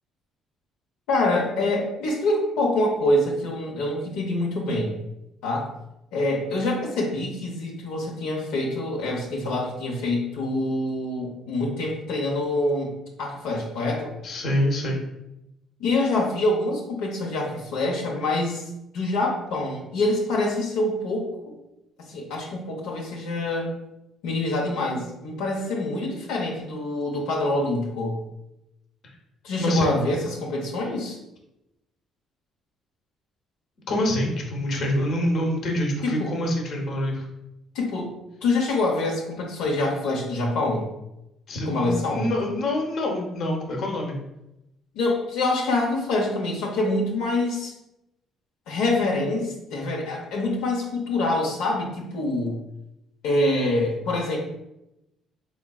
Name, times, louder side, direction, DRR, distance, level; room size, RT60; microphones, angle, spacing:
voice 1, 1.1-4.9 5.4-5.7 6.1-12.9 13.2-14.1 15.8-18.6 18.9-21.5 22.1-23.8 24.2-28.2 29.4-31.2 36.0-36.4 37.7-38.1 38.4-40.9 41.7-42.3 44.9-47.7 48.7-52.6 53.2-54.4, left 2 dB, 90° left, -1 dB, 0.8 m, -25 dB
voice 2, 14.2-15.0 29.0-29.1 29.6-30.0 33.9-37.2 41.5-44.2, left 1 dB, 55° left, 0 dB, 0.9 m, -26 dB
3.9 x 3.5 x 2.3 m, 0.88 s
cardioid pair, 110°, 0 cm